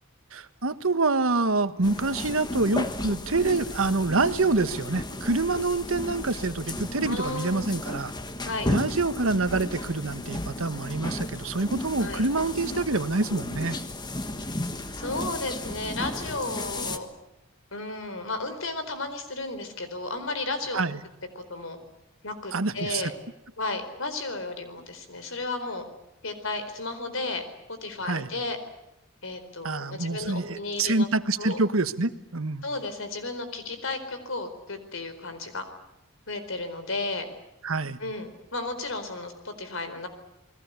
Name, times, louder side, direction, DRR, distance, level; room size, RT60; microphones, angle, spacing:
voice 1, 0.3-8.1 8.7-13.8 20.7-21.0 22.5-23.1 28.0-28.3 29.6-32.6 37.6-38.0, right 3 dB, 75° right, 11 dB, 1.3 m, -26 dB
sound 1, 1.8-17.0, left 1 dB, 20° left, 1.4 m, -34 dB
voice 2, 7.0-7.8 8.5-8.7 12.0-12.2 15.0-17.1 17.7-20.8 21.3-21.8 22.2-23.1 23.6-25.8 26.2-27.4 27.7-28.6 29.2-31.1 31.4-31.6 32.6-35.6 36.3-37.3 38.0-40.1, left 2 dB, 70° left, 9 dB, 4.4 m, -33 dB
30.0 x 21.0 x 8.3 m, 0.83 s
head